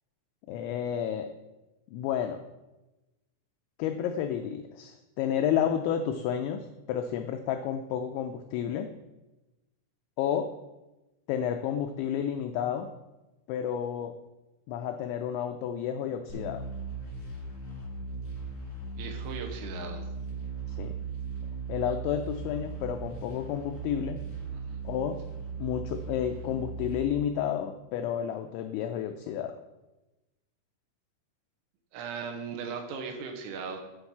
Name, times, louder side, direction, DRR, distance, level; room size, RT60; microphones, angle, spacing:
voice 1, 0.5-1.3 1.9-2.4 3.8-8.9 10.2-10.5 11.3-12.9 13.5-14.2 14.7-16.6 20.8-21.0 21.7-24.3 24.8-25.2 25.6-29.6, left 9 dB, 85° left, 6 dB, 2.6 m, -31 dB
sound 1, 16.3-26.9, right 4 dB, 35° left, 1.8 m, -38 dB
voice 2, 19.0-20.1 24.5-24.8 31.9-33.8, right 5 dB, 85° right, 3 dB, 3.5 m, -38 dB
8.2 x 6.0 x 5.8 m, 1.0 s
omnidirectional pair, 5.8 m